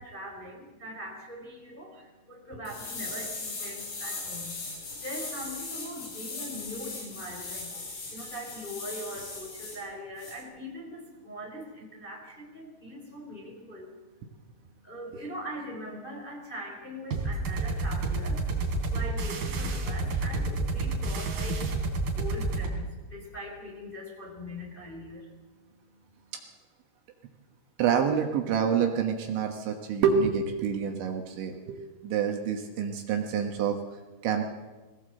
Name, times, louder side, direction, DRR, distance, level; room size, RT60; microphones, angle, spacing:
voice 1, 0.0-4.6 4.9-14.4 14.8-26.3, equal, 10° left, -1 dB, 3.1 m, -42 dB
sound 1, 2.7-9.8 10.2-10.3, left 3 dB, 65° left, 9.2 m, -38 dB
sound 2, 17.1-22.7, right 3 dB, 50° right, 4.4 m, -30 dB
voice 2, 27.8-33.8 34.2-34.4, right 7 dB, 70° right, 3 dB, 3.4 m, -27 dB
20.5 x 17.0 x 7.8 m, 1.2 s
omnidirectional pair, 5.9 m